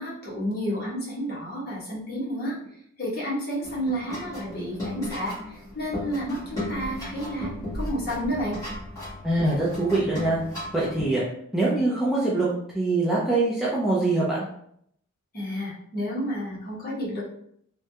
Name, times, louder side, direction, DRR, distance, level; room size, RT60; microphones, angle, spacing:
voice 1, 0.0-2.6 3.0-8.6 15.3-17.2, equal, 45° left, -6 dB, 1.2 m, -31 dB
sound 1, 3.6-11.1, left 1 dB, 15° left, 1.5 m, -36 dB
voice 2, 9.2-10.4 10.7-11.2 11.5-12.5 12.7-14.4, right 2 dB, ahead, -7 dB, 0.5 m, -23 dB
3.2 x 2.3 x 2.8 m, 0.68 s
head